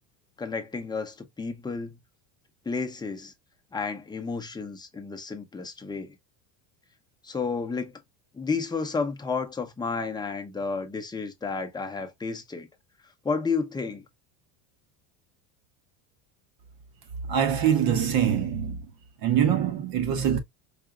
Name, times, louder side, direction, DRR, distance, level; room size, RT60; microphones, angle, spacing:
voice 1, 0.4-2.0 2.7-3.3 3.7-6.2 7.2-7.9 8.3-12.7 13.2-14.0, left 4 dB, 10° left, 0.7 m, -31 dB
voice 2, 17.3-18.9 19.2-20.4, right 9 dB, 50° right, 0.9 m, -24 dB
5.0 x 2.7 x 2.3 m
cardioid pair, 135°, 45 cm